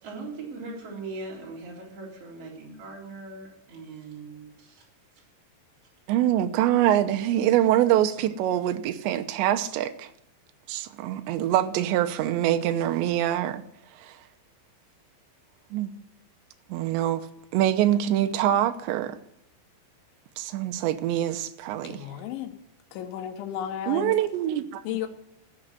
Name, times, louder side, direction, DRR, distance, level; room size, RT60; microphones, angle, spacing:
voice 1, 0.0-4.9, right 3 dB, 35° right, 4.3 m, -40 dB
voice 2, 6.1-10.1 10.7-13.6 14.0-14.2 15.7-15.9 16.7-17.3 17.5-19.2 20.4-22.1 23.9-25.1, right 12 dB, 80° right, 3.0 m, -24 dB
voice 3, 21.8-22.5 22.9-24.2 24.9-25.1, left 10 dB, 85° left, 3.5 m, -33 dB
15.0 x 7.7 x 9.3 m
omnidirectional pair, 5.2 m